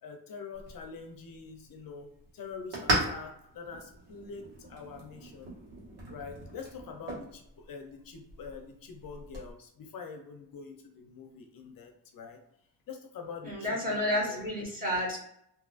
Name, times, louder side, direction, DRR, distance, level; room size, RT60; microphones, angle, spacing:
voice 1, 0.0-2.1 2.3-5.5 6.1-12.4 12.9-14.4, left 5 dB, 60° left, 4 dB, 0.6 m, -45 dB
sound 1, 0.5-9.5, right 1 dB, 80° right, 1.4 m, -38 dB
voice 2, 13.4-15.2, left 1 dB, 20° right, -3 dB, 1.4 m, -30 dB
3.7 x 2.8 x 2.4 m, 0.76 s
cardioid pair, 105°, 39 cm